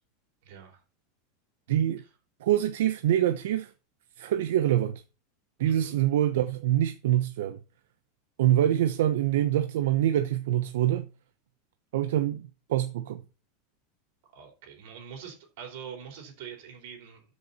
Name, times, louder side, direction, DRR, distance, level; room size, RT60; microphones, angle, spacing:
voice 1, 0.4-0.8 5.6-6.0 14.3-17.2, right 7 dB, 50° right, 4.4 m, -44 dB
voice 2, 1.7-2.0 2.4-3.7 4.2-5.0 5.6-7.6 8.4-11.1 11.9-12.4 12.7-13.2, right 12 dB, 70° right, 0.9 m, -25 dB
13.0 x 6.5 x 4.2 m
supercardioid pair, 180°, 0 cm